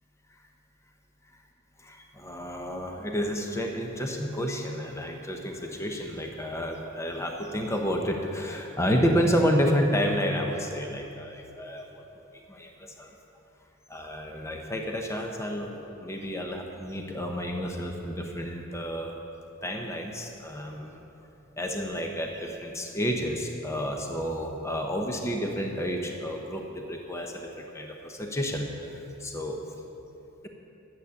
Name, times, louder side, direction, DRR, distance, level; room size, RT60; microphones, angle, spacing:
voice 1, 1.8-12.0 12.5-13.1 13.9-19.1 19.6-21.0 21.6-29.6, equal, 15° left, 2 dB, 0.8 m, -30 dB
11.0 x 8.0 x 7.0 m, 2.9 s
head